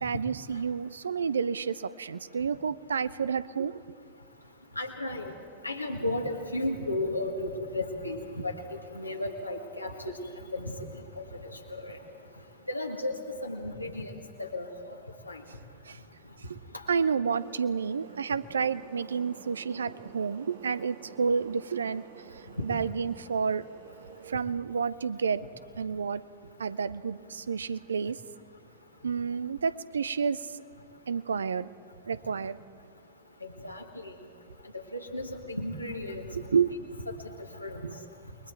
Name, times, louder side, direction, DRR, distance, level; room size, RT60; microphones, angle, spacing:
voice 1, 0.0-3.8 15.8-16.0 16.4-16.6 16.9-23.6 24.2-25.4 25.8-26.2 26.6-28.2 29.0-30.6 31.1-31.7 32.1-32.6 36.4-37.0 37.8-37.9, right 6 dB, 70° right, 17 dB, 0.5 m, -30 dB
voice 2, 4.7-5.3 5.6-10.1 10.5-10.7 11.2-11.3 11.7-12.0 12.7-14.9 15.2-15.4 33.4-34.1 34.7-36.6 37.6-37.9, left 1 dB, 85° left, 2 dB, 1.7 m, -34 dB
sound 1, 17.3-24.4, right 8 dB, 55° right, 1.1 m, -50 dB
29.0 x 21.0 x 4.7 m, 2.3 s
figure-of-eight pair, 90°, 0 cm